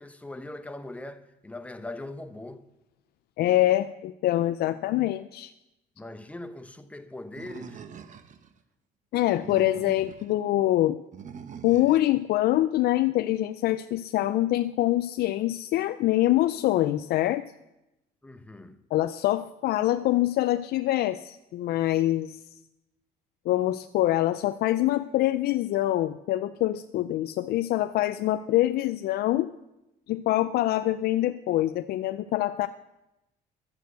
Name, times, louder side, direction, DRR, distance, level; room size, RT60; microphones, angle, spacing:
voice 1, 0.0-2.6 6.0-7.8 18.2-18.8, left 2 dB, 10° left, 0.8 m, -41 dB
voice 2, 3.4-5.5 9.1-11.0 11.6-17.4 18.9-22.4 23.5-29.5 30.1-32.7, left 15 dB, 70° left, 0.4 m, -25 dB
Animal, 7.4-8.5 9.2-10.3 11.1-12.1, right 7 dB, 50° right, 0.9 m, -44 dB
11.5 x 8.2 x 8.0 m
cardioid pair, 110°, 17 cm